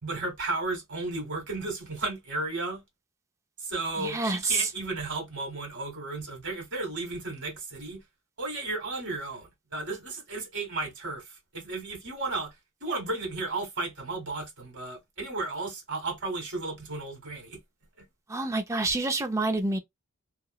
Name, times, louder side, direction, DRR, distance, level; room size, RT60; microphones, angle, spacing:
voice 1, 0.0-2.8 3.6-8.0 8.4-12.5 12.8-17.6, right 3 dB, 55° right, 1.6 m, -34 dB
voice 2, 4.0-4.7 18.3-19.8, right 3 dB, 15° right, 0.4 m, -27 dB
2.9 x 2.0 x 2.3 m
head